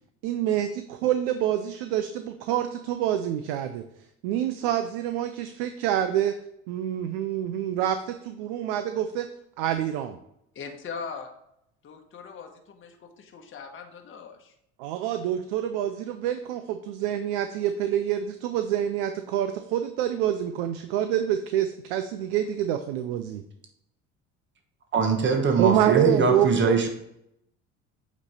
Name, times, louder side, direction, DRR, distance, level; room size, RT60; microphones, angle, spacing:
voice 1, 0.2-3.8 4.2-6.3 6.7-9.3 9.6-10.2 14.8-23.4 25.6-26.8, right 10 dB, 80° right, 9 dB, 0.5 m, -27 dB
voice 2, 10.5-11.3 11.8-14.5, left 5 dB, 40° left, 3 dB, 1.0 m, -40 dB
voice 3, 24.9-26.9, right 5 dB, 35° right, 3 dB, 1.2 m, -22 dB
8.4 x 3.1 x 4.1 m, 0.78 s
supercardioid pair, 75°, 31 cm